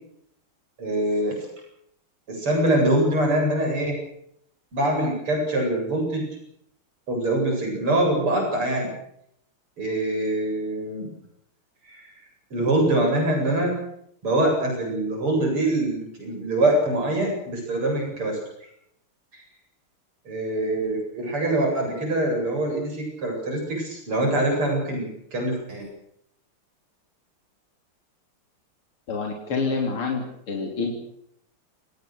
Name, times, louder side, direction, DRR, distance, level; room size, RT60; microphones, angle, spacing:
voice 1, 0.8-1.4 2.3-4.0 4.7-6.3 7.1-8.9 9.8-11.1 11.9-12.1 12.5-13.7 14.2-18.4 20.3-25.0 25.3-25.9, right 1 dB, 85° right, 1 dB, 9.2 m, -24 dB
voice 2, 29.1-30.9, left 4 dB, 85° left, 1 dB, 4.2 m, -27 dB
29.0 x 19.5 x 6.8 m, 0.73 s
omnidirectional pair, 2.3 m